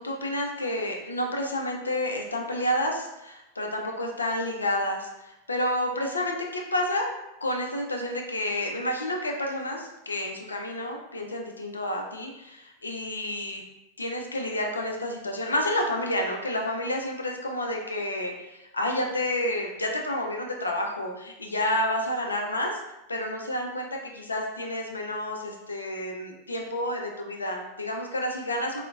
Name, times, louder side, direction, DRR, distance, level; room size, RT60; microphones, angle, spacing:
voice 1, 0.0-7.1 7.4-13.6 14.0-22.8 23.1-28.8, left 1 dB, 75° left, 1 dB, 0.4 m, -30 dB
3.7 x 2.1 x 2.3 m, 0.95 s
figure-of-eight pair, 90°, 0 cm